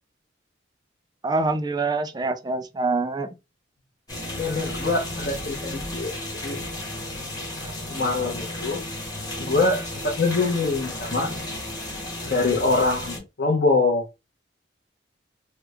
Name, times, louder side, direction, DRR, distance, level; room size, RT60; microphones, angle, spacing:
voice 1, 1.2-3.3 7.6-7.7, right 3 dB, 20° right, 0.4 m, -25 dB
sound 1, 4.1-13.2, left 1 dB, 20° left, 1.0 m, -33 dB
voice 2, 4.3-6.1 6.4-6.6 7.9-8.8 9.4-11.3 12.2-14.0, left 3 dB, 55° left, 0.8 m, -24 dB
3.3 x 2.1 x 3.4 m
head